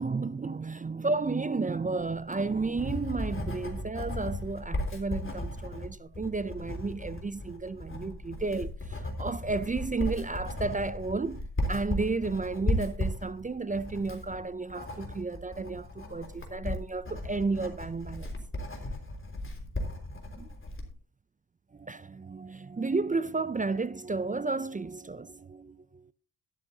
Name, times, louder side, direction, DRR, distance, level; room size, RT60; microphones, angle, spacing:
voice 1, 0.0-18.4 20.3-20.5 21.7-26.1, right 3 dB, 20° right, 0.4 m, -32 dB
Writing, 2.2-20.9, left 1 dB, 30° left, 3.5 m, -36 dB
13.0 x 12.0 x 2.8 m
cardioid pair, 80°, 40 cm